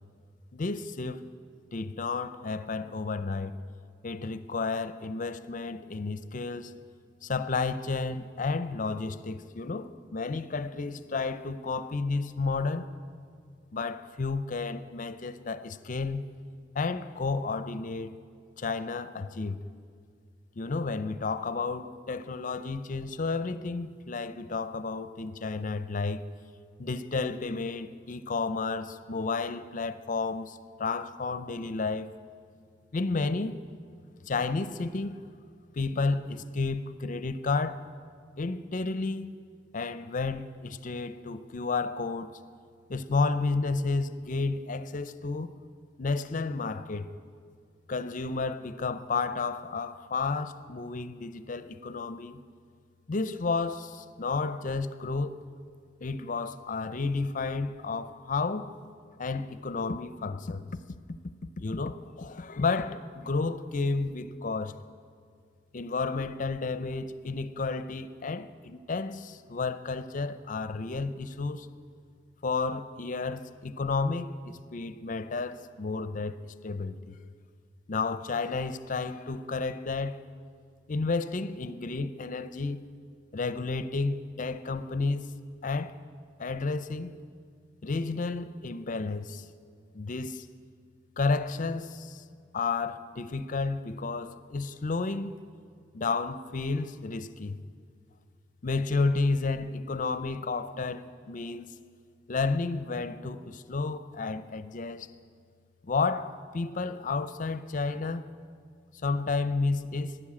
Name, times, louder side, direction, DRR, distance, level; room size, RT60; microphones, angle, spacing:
voice 1, 0.5-1.3 1.7-3.6 4.0-6.7 7.2-12.9 13.7-16.2 16.7-18.1 18.6-19.6 20.6-26.3 26.8-32.1 32.9-33.6 34.2-35.2 35.7-37.8 38.4-39.4 39.7-42.4 42.9-45.5 46.0-47.1 47.9-52.4 53.1-55.4 56.0-58.7 59.2-60.8 61.6-64.8 65.7-71.7 72.4-77.2 77.9-80.2 80.9-82.8 83.3-85.3 85.6-86.0 86.4-87.1 87.8-89.5 89.9-90.5 91.2-92.2 92.5-95.4 95.9-97.6 98.6-101.7 102.3-105.1 105.8-108.3 109.0-110.2, left 3 dB, 45° left, 0.6 m, -31 dB
12.5 x 11.0 x 8.6 m
head